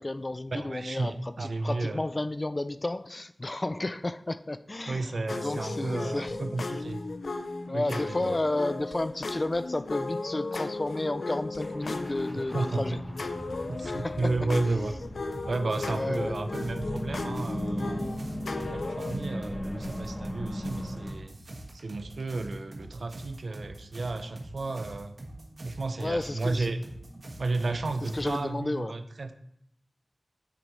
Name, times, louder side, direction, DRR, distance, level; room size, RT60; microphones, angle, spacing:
voice 1, 0.0-1.1 1.4-6.4 7.7-13.0 13.8-14.2 15.9-16.4 26.0-26.7 28.0-28.9, left 2 dB, 35° left, 0.3 m, -32 dB
voice 2, 0.5-2.0 4.9-7.0 7.7-8.4 12.4-13.0 13.7-15.0 15.5-21.4 21.7-25.2 25.6-26.8 27.4-29.3, right 3 dB, 80° right, 0.6 m, -33 dB
sound 1, 5.3-19.2, left 3 dB, 90° left, 0.5 m, -36 dB
sound 2, 11.6-21.1, equal, 15° left, 1.5 m, -38 dB
sound 3, 15.3-28.4, right 1 dB, 65° right, 1.3 m, -44 dB
8.2 x 6.3 x 3.1 m
wide cardioid pair, 70°, 0 cm